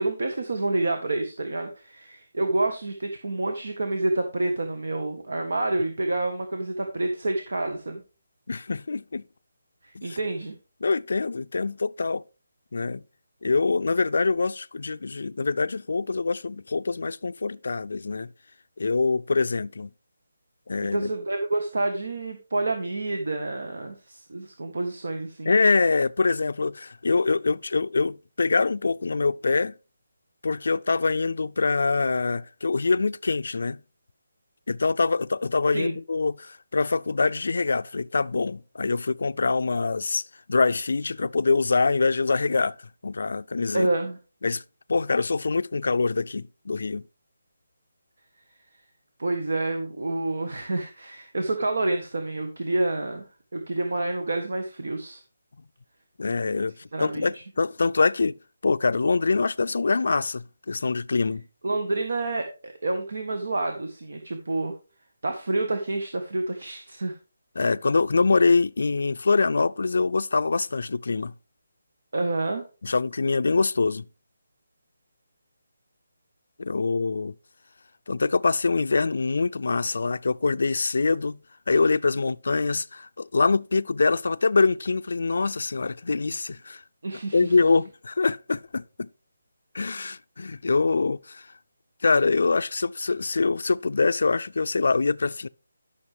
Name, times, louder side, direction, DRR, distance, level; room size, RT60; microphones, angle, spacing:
voice 1, 0.0-8.0 9.8-10.6 20.8-25.5 35.7-36.0 43.7-44.2 49.2-53.2 53.5-55.2 56.9-57.4 61.6-64.7 65.2-67.2 72.1-72.6 87.0-87.5, right 2 dB, 75° right, 1.5 m, -28 dB
voice 2, 8.5-9.2 9.9-10.2 10.8-12.2 12.7-13.0 13.4-18.3 18.8-19.9 20.7-21.1 25.4-29.7 30.4-33.8 34.7-42.8 43.0-43.9 44.4-44.6 44.9-47.0 56.2-58.4 58.6-61.4 67.6-71.3 72.8-74.1 76.6-77.3 78.1-81.4 81.7-86.8 87.3-89.1 89.7-91.5 92.0-95.5, left 4 dB, 70° left, 0.4 m, -24 dB
12.5 x 6.4 x 3.5 m
hypercardioid pair, 170°, 0 cm